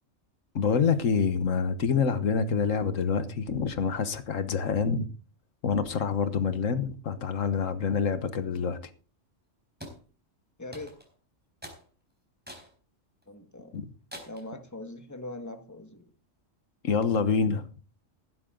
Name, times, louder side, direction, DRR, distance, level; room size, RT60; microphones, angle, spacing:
voice 1, 0.5-5.1 5.6-8.9 13.7-13.9 16.8-17.6, left 6 dB, 85° left, 1.6 m, -27 dB
sound 1, 9.8-10.0 10.7-11.1 11.6-11.8 12.5-12.7 13.2-13.3 14.1-14.5, equal, 5° right, 4.2 m, -44 dB
voice 2, 10.6-10.9 13.3-13.8 14.3-16.1, left 2 dB, 15° left, 1.7 m, -41 dB
15.5 x 11.5 x 3.9 m
omnidirectional pair, 1.3 m